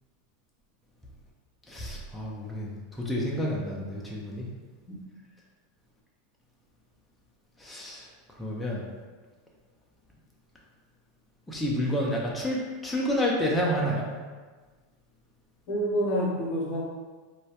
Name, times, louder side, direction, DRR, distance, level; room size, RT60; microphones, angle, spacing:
voice 1, 1.7-4.4 7.6-8.1 8.4-8.8 11.5-12.6 12.8-14.1, equal, 5° left, -4 dB, 0.4 m, -29 dB
voice 2, 15.7-16.8, equal, 60° left, -3 dB, 0.7 m, -27 dB
2.2 x 2.0 x 2.8 m, 1.4 s
hypercardioid pair, 110°, 0 cm